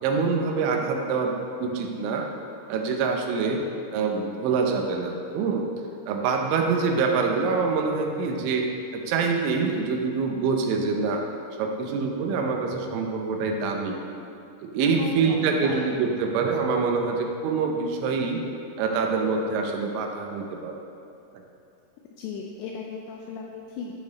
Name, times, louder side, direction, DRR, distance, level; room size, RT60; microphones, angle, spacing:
voice 1, 0.0-2.3 2.7-3.6 3.9-5.7 6.1-8.7 8.9-11.2 11.6-14.0 14.6-18.4 18.8-20.8, right 4 dB, 90° right, 2 dB, 3.2 m, -25 dB
voice 2, 15.0-16.0 22.2-23.9, left 5 dB, 85° left, 0 dB, 2.4 m, -36 dB
11.5 x 5.2 x 4.0 m, 2.7 s
omnidirectional pair, 5.3 m